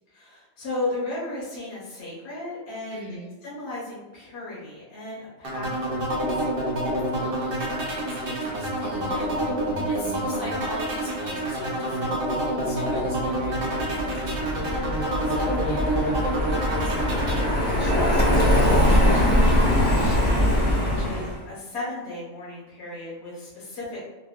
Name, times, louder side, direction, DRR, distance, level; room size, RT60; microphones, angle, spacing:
voice 1, 0.1-3.0 3.4-6.5 17.3-24.1, left 2 dB, 60° left, -7 dB, 1.1 m, -35 dB
voice 2, 2.9-3.3 7.1-9.6 9.9-16.9 20.9-21.3, left 1 dB, 90° left, -7 dB, 1.6 m, -40 dB
sound 1, 5.4-17.5, right 1 dB, 55° right, 0.8 m, -27 dB
Car passing by, 12.9-21.4, left 1 dB, 10° left, 0.7 m, -22 dB
3.5 x 2.2 x 2.3 m, 1.2 s
omnidirectional pair, 1.3 m